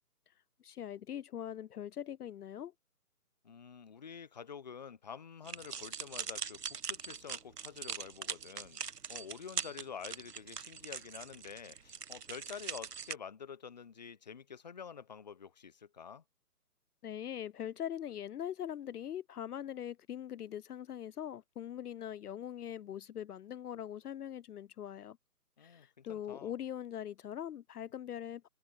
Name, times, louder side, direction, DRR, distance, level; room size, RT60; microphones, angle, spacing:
voice 1, 0.6-2.7 17.0-25.2 25.6-28.5, left 10 dB, 75° left, 0.5 m, -42 dB
voice 2, 3.4-8.8 9.1-16.2 25.6-26.5, left 7 dB, 30° left, 0.8 m, -48 dB
sound 1, 5.4-13.1, right 6 dB, 80° right, 1.2 m, -42 dB
figure-of-eight pair, 155°, 47 cm